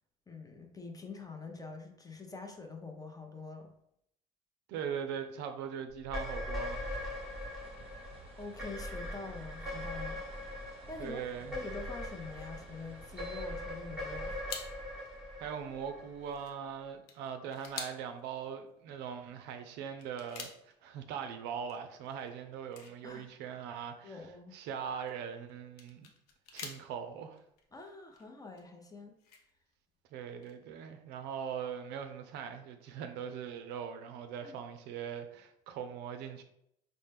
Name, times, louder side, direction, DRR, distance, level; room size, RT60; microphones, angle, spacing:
voice 1, 0.3-3.7 8.4-10.2 10.7-11.2 11.5-14.3 23.0-23.3 24.0-24.5 27.7-29.1 34.4-34.6, left 3 dB, 20° left, 4 dB, 0.7 m, -45 dB
voice 2, 4.7-7.0 11.0-11.6 15.4-24.2 24.5-26.1 26.5-27.4 30.1-36.4, right 7 dB, 65° right, 7 dB, 0.5 m, -41 dB
sound 1, 6.0-16.5, left 1 dB, ahead, 1.1 m, -41 dB
sound 2, 6.7-16.4, right 2 dB, 30° right, 0.9 m, -55 dB
sound 3, 14.3-19.1 19.4-19.5 20.0-21.2 21.4-23.9 24.3-28.3 28.6-29.7 30.0-30.1 30.3-30.5, left 6 dB, 80° left, 0.6 m, -48 dB
4.1 x 2.1 x 3.3 m, 0.75 s
hypercardioid pair, 60°, 19 cm